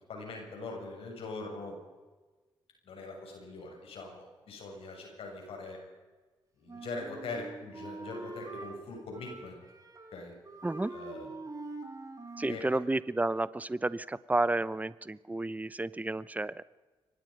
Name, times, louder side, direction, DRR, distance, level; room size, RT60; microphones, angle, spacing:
voice 1, 0.1-1.8 2.8-5.8 6.6-9.6 10.1-10.3 10.9-11.3 12.5-12.6, left 3 dB, 75° left, 1 dB, 7.3 m, -42 dB
Wind instrument woodwind instrument, 6.7-8.8 9.1-10.2 10.4-12.6, right 3 dB, 35° right, 5.7 m, -44 dB
voice 2, 12.4-16.6, right 2 dB, 15° right, 18 dB, 0.9 m, -31 dB
24.0 x 20.5 x 5.4 m, 1.3 s
supercardioid pair, 50°, 10 cm